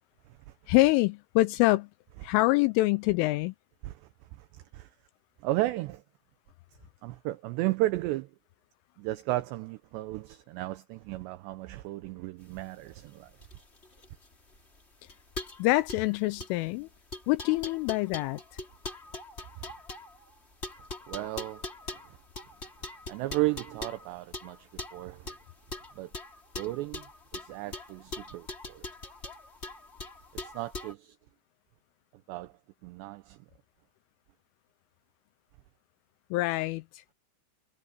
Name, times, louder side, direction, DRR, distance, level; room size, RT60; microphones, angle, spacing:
voice 1, 0.7-1.9 2.2-3.5 15.6-16.9 17.3-18.4 36.3-37.0, left 19 dB, 85° left, 3.1 m, -25 dB
voice 2, 4.4-4.9 5.4-6.0 7.0-8.3 9.0-13.3 19.6-19.7 21.1-21.7 22.1-22.2 23.1-25.3 26.0-26.1 26.6-28.9 30.3-31.2 32.3-32.5 32.8-33.4, right 17 dB, 85° right, 2.4 m, -34 dB
sound 1, 12.5-30.9, left 2 dB, 15° left, 2.9 m, -42 dB
omnidirectional pair, 5.8 m